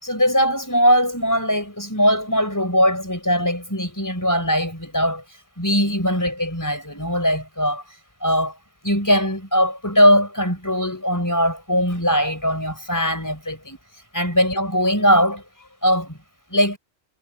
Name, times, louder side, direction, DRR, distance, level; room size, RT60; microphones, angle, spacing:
voice 1, 0.0-5.2 5.6-7.8 8.2-8.5 8.8-13.8 14.1-16.2 16.5-16.8, equal, 15° left, 4.3 m, -20 dB
omnidirectional pair, 1.3 m